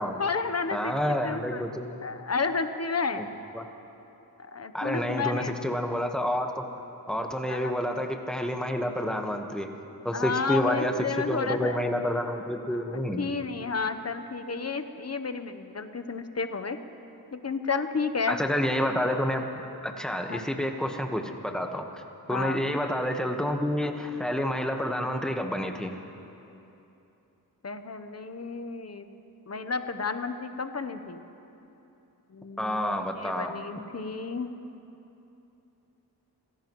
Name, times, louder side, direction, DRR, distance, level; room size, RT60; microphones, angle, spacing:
voice 1, 0.2-1.6 2.0-3.3 4.4-5.5 7.5-7.7 10.1-11.8 12.4-12.5 12.7-12.8 13.2-16.8 17.3-18.4 20.3-20.4 22.3-22.6 27.6-29.1 29.5-31.2 32.3-32.9 33.2-34.5, left 4 dB, 40° left, 9 dB, 0.9 m, -31 dB
voice 2, 0.7-2.0 3.2-3.3 3.5-3.6 4.7-6.6 7.1-9.7 10.0-13.3 18.3-19.5 19.8-21.8 22.3-25.9 32.6-33.5, equal, ahead, 3 dB, 1.3 m, -29 dB
28.0 x 16.5 x 3.1 m, 2.9 s
wide cardioid pair, 70°, 39 cm